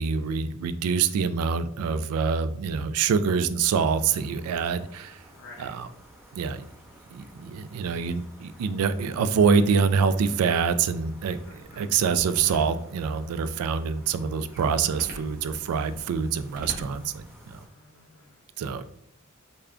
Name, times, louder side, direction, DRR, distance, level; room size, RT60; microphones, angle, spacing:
voice 1, 0.0-5.2 5.6-5.9 6.3-6.6 7.1-11.4 11.7-17.6 18.6-18.8, right 6 dB, 80° right, 13 dB, 0.3 m, -25 dB
sound 1, 3.6-17.7, right 1 dB, 10° right, 0.8 m, -53 dB
voice 2, 5.3-5.8 7.7-8.2 11.4-12.0 17.6-18.4, left 3 dB, 55° left, -1 dB, 0.6 m, -51 dB
sound 2, 11.2-17.5, equal, 40° right, 0.9 m, -46 dB
3.6 x 2.2 x 3.4 m, 0.70 s
head